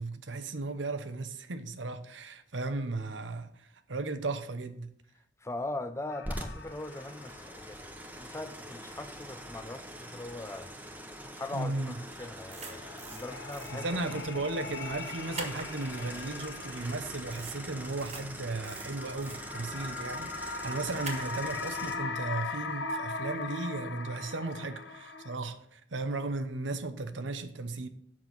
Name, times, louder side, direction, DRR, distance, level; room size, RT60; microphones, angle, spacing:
voice 1, 0.0-4.9 11.5-12.0 13.7-27.9, right 3 dB, 90° right, 0.9 m, -36 dB
voice 2, 5.4-7.9 8.2-10.7 11.3-13.9, left 2 dB, 15° left, 0.5 m, -40 dB
sound 1, 6.1-7.7 8.0-8.1 12.5-25.4, left 4 dB, 65° left, 0.9 m, -40 dB
sound 2, 6.2-22.0, equal, 10° right, 1.1 m, -44 dB
sound 3, 12.5-13.2 13.5-13.7 15.3-15.6 17.3-17.6 17.9-18.2 18.6-19.4 21.0-21.3, right 3 dB, 40° right, 1.7 m, -42 dB
7.6 x 6.1 x 7.3 m
head